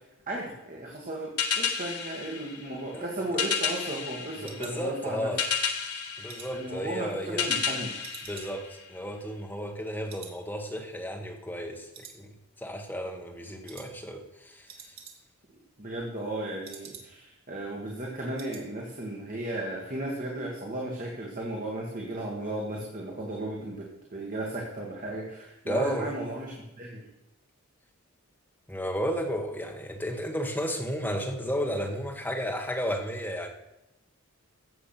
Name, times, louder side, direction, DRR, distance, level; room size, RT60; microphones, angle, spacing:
voice 1, 0.3-5.4 6.5-8.0 15.8-27.0, right 1 dB, 35° right, -2 dB, 1.8 m, -35 dB
sound 1, 1.4-9.2, left 7 dB, 90° left, 1.7 m, -32 dB
sound 2, 2.8-5.5 5.9-7.7 8.0-9.8 10.1-10.4 10.7-10.8 11.3-11.7 11.9-12.7 13.0-13.3 13.7-13.9 14.2-14.3 14.5-15.5 15.8-17.4 17.7-17.8 18.1-18.7 19.0-19.2 19.5-19.6, right 6 dB, 65° right, 2.2 m, -50 dB
voice 2, 4.4-5.4 6.2-7.5 8.3-12.3 12.6-14.7 25.7-26.3 28.7-33.5, equal, 10° left, 1 dB, 1.4 m, -33 dB
15.5 x 7.3 x 5.9 m, 0.91 s
head